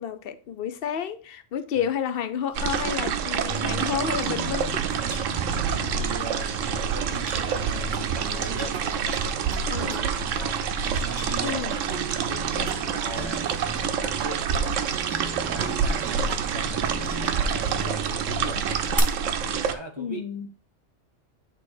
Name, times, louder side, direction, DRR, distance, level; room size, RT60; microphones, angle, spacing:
voice 1, 0.0-4.8 9.7-10.1 11.4-11.7 20.0-20.5, left 8 dB, 60° left, 0.7 m, -30 dB
sound 1, 2.5-19.0, right 3 dB, 15° right, 0.9 m, -38 dB
sound 2, 2.5-19.7, right 7 dB, 90° right, 1.0 m, -27 dB
voice 2, 5.6-9.9 10.2-10.6 11.1-13.4 14.0-18.8 19.4-20.2, right 2 dB, 35° right, 0.5 m, -40 dB
sound 3, 7.6-19.1, right 7 dB, 60° right, 0.8 m, -43 dB
8.2 x 3.2 x 4.2 m
omnidirectional pair, 1.3 m